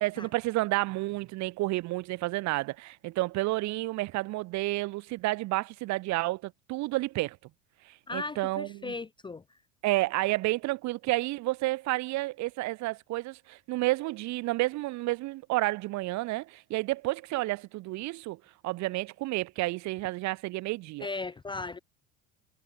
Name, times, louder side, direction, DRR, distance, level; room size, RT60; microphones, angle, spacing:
voice 1, 0.0-7.4 7.8-8.9 9.8-21.1, right 19 dB, 40° right, 1.1 m, -30 dB
voice 2, 8.1-9.4 21.0-21.8, left 3 dB, 10° left, 0.7 m, -37 dB
figure-of-eight pair, 75°, 42 cm